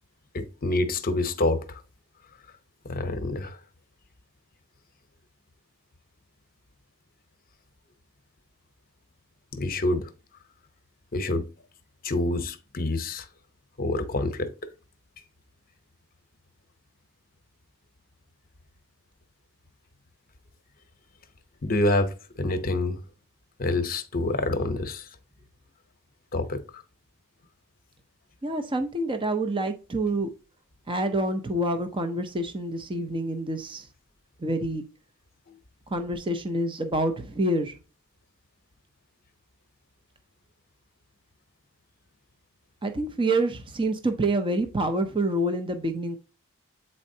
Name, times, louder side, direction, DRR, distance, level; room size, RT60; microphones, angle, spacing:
voice 1, 0.3-1.8 2.8-3.6 9.5-10.1 11.1-11.5 12.0-13.3 13.8-14.5 21.6-23.0 23.6-25.1 26.3-26.8, left 2 dB, 40° left, 0.8 m, -27 dB
voice 2, 28.4-30.3 30.9-33.9 34.4-34.8 35.9-37.8 42.8-46.2, right 1 dB, 25° right, 0.6 m, -27 dB
8.2 x 4.3 x 2.7 m
head